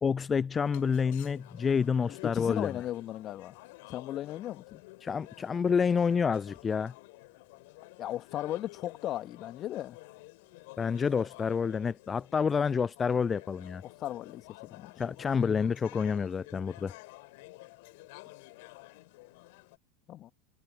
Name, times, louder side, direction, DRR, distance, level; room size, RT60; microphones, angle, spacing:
voice 1, 0.0-2.7 5.0-6.9 10.8-13.8 15.0-16.9, left 6 dB, 25° left, 0.5 m, -28 dB
sound 1, 0.5-19.8, left 24 dB, 55° left, 3.4 m, -51 dB
voice 2, 2.2-3.6 3.9-4.8 8.0-10.0 13.8-14.9 20.1-20.3, left 13 dB, 40° left, 2.6 m, -37 dB
figure-of-eight pair, 80°, 0 cm